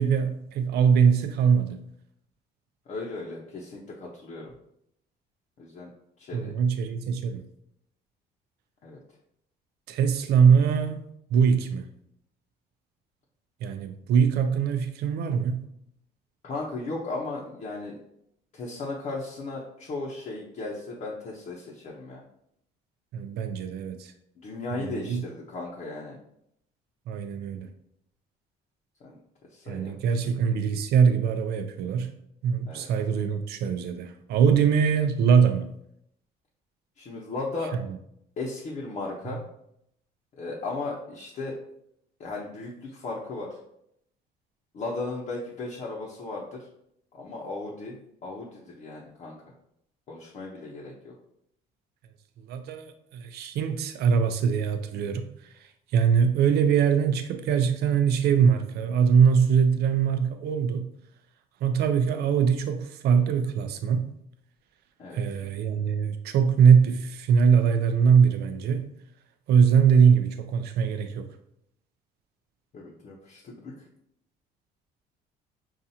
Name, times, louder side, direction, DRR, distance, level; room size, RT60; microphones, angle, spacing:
voice 1, 0.0-1.8 6.3-7.4 9.9-11.0 11.3-11.9 13.6-15.6 23.1-24.1 24.7-25.2 27.1-27.7 29.7-32.1 32.4-35.7 37.7-37.8 52.4-55.3 55.9-60.9 61.6-64.0 65.1-68.8 69.5-71.3, right 7 dB, 75° right, 0.5 m, -22 dB
voice 2, 2.9-4.5 5.6-5.9 6.2-6.5 8.8-9.0 16.4-18.0 18.5-22.2 24.4-26.2 29.0-29.2 29.5-30.3 32.7-32.9 37.0-37.7 38.4-39.4 40.3-41.5 42.2-43.5 44.7-46.7 47.1-48.0 48.2-49.4 50.1-51.1 65.0-65.2 72.7-73.7, left 3 dB, 50° left, 0.8 m, -36 dB
5.5 x 2.4 x 2.7 m
cardioid pair, 110°, 17 cm